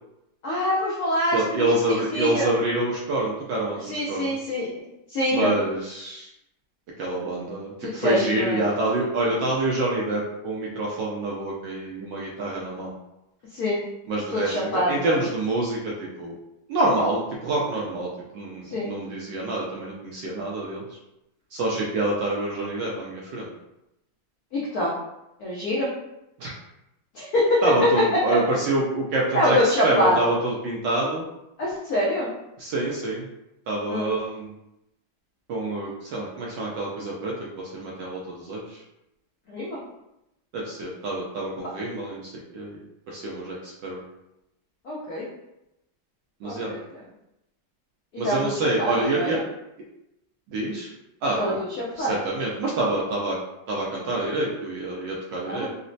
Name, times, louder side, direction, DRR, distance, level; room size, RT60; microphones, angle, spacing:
voice 1, 0.4-2.5 3.8-5.5 7.8-8.7 13.5-13.8 14.3-15.2 18.6-18.9 24.5-24.9 25.4-25.9 27.1-27.6 28.3-28.4 29.3-30.3 31.6-32.3 33.9-34.1 39.5-39.8 44.8-45.3 46.4-47.0 48.2-49.4 51.4-51.5 51.8-52.2 55.4-55.7, left 1 dB, 80° left, -6 dB, 0.8 m, -25 dB
voice 2, 1.3-4.3 5.3-6.3 7.0-12.9 14.1-14.6 14.9-16.3 16.7-20.8 21.5-23.5 26.4-26.5 27.6-31.2 32.6-33.3 33.7-34.5 35.5-38.8 40.5-42.8 43.1-44.0 46.4-46.7 48.2-49.4 50.5-50.9 51.2-51.6 52.0-53.4 53.7-55.7, right 2 dB, 75° right, -4 dB, 1.0 m, -27 dB
4.0 x 2.1 x 2.6 m, 0.89 s
omnidirectional pair, 2.4 m